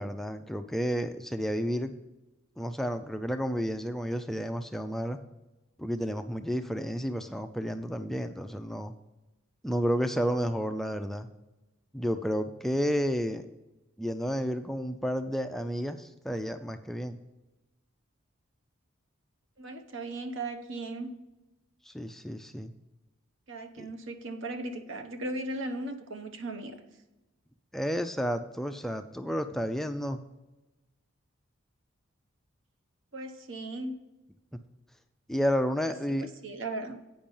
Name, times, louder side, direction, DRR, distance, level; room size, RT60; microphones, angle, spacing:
voice 1, 0.0-1.9 2.6-5.2 5.8-8.9 9.6-11.3 11.9-13.4 14.0-17.2 21.9-22.7 23.8-23.9 27.7-30.2 35.3-36.3, equal, ahead, 7 dB, 0.3 m, -31 dB
voice 2, 19.6-21.1 23.5-26.7 33.1-34.0 35.8-37.0, right 2 dB, 65° right, 7 dB, 1.0 m, -37 dB
8.7 x 5.3 x 5.4 m, 1.0 s
head